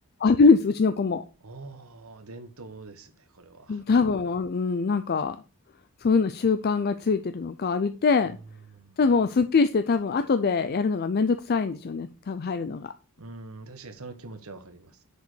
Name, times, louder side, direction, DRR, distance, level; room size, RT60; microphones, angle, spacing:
voice 1, 0.2-1.2 3.7-5.4 6.0-8.4 9.0-12.9, left 4 dB, 45° left, 0.4 m, -23 dB
voice 2, 1.4-3.8 8.7-9.0 13.2-15.0, right 3 dB, 70° right, 1.2 m, -44 dB
6.6 x 5.1 x 6.3 m
head